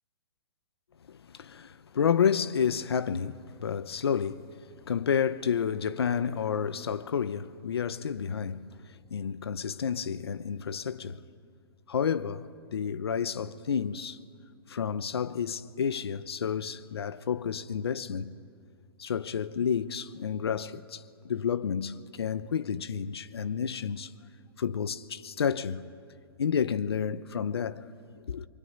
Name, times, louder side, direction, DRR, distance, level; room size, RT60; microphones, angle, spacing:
voice 1, 1.1-4.5 4.9-11.2 11.9-14.2 14.7-18.3 19.0-24.1 24.6-25.9 26.4-27.9 28.3-28.5, left 7 dB, 90° left, 0.9 m, -30 dB
25.5 x 24.5 x 9.5 m
hypercardioid pair, 155°, 13 cm